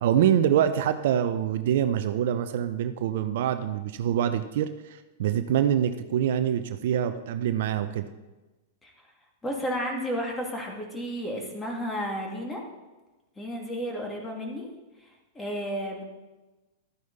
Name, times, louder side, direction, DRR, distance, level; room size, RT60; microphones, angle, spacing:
voice 1, 0.0-8.1, right 10 dB, 60° right, 10 dB, 0.6 m, -25 dB
voice 2, 9.4-12.6 13.4-14.7 15.3-16.0, equal, 15° left, 0 dB, 2.6 m, -32 dB
12.5 x 9.3 x 4.1 m, 1.1 s
hypercardioid pair, 100°, 0 cm